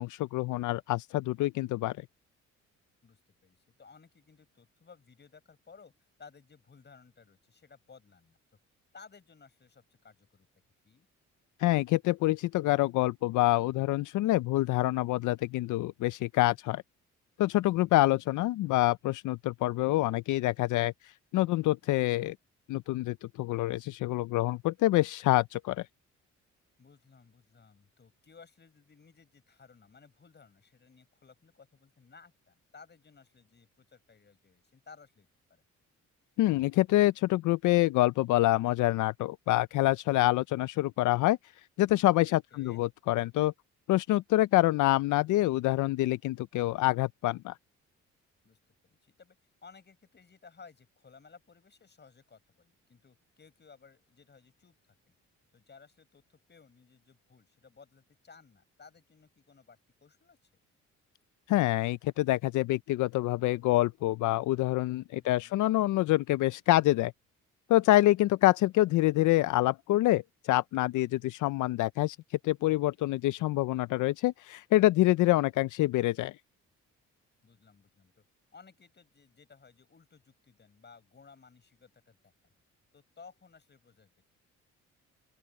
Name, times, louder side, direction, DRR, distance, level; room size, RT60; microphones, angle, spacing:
voice 1, 0.0-2.0 11.6-16.8 17.4-22.4 22.7-25.9 36.4-41.4 41.8-43.5 43.9-47.6 61.5-67.1 67.7-72.2 72.4-76.3, left 17 dB, 80° left, 0.5 m, -26 dB
voice 2, 3.0-5.9 6.2-8.4 8.9-10.5 10.8-11.1 17.7-18.1 26.8-35.6 42.5-42.8 48.4-48.6 48.8-49.4 49.6-55.1 55.5-60.4 65.2-65.6 77.4-78.2 78.5-82.3 82.9-84.2, left 5 dB, 35° left, 6.0 m, -57 dB
open air
cardioid pair, 90°, 30 cm